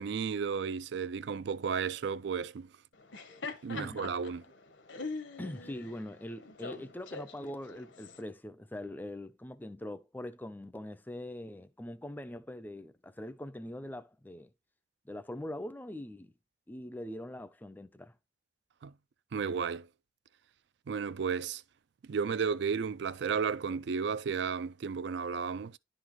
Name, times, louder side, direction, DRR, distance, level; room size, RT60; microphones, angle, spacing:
voice 1, 0.0-2.7 3.6-4.4 18.8-18.9 19.3-19.9 20.9-21.6 22.1-25.8, right 6 dB, 60° right, 0.3 m, -33 dB
Laughter, 2.9-8.2, left 3 dB, 65° left, 0.9 m, -43 dB
voice 2, 3.7-4.1 5.4-14.5 15.1-16.3 16.7-18.2, left 1 dB, 10° left, 0.4 m, -42 dB
11.0 x 3.9 x 3.0 m
head